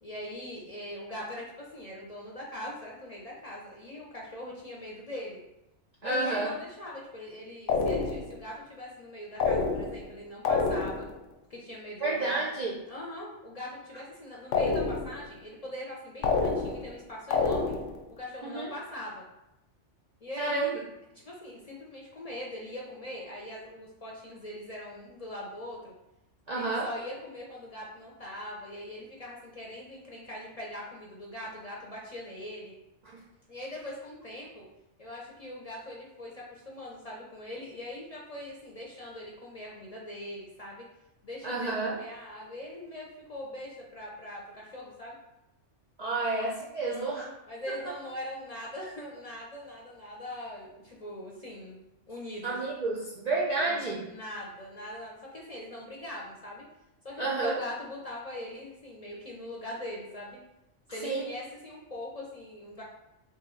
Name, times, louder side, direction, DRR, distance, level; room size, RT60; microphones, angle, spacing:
voice 1, 0.0-5.4 6.0-11.1 11.5-12.4 12.9-17.7 18.1-19.3 20.2-20.8 21.1-25.9 26.5-32.7 33.5-34.7 35.0-40.9 41.2-45.2 46.8-51.8 52.1-52.6 53.7-53.8 54.1-56.6 57.0-60.4 60.9-62.8, left 1 dB, 45° left, -3 dB, 0.5 m, -41 dB
voice 2, 6.0-6.5 12.0-12.7 18.4-18.7 20.4-20.7 26.5-26.9 41.4-42.0 46.0-47.3 52.4-54.1 57.2-57.6 61.0-61.3, right 3 dB, 55° right, -4 dB, 0.4 m, -30 dB
sound 1, 7.7-8.4 9.4-10.1 10.4-11.2 14.5-15.2 16.2-17.0 17.3-18.0, left 4 dB, 85° left, 0.9 m, -28 dB
3.0 x 3.0 x 3.7 m, 0.91 s
omnidirectional pair, 1.2 m